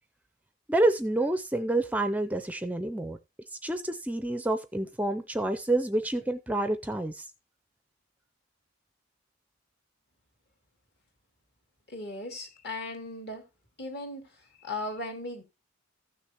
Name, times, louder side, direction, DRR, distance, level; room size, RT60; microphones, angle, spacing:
voice 1, 0.7-3.2 3.6-7.3, right 2 dB, 5° right, 0.4 m, -28 dB
voice 2, 11.9-13.4 13.8-14.2 14.6-15.4, left 2 dB, 55° left, 2.6 m, -37 dB
15.0 x 6.4 x 2.9 m
head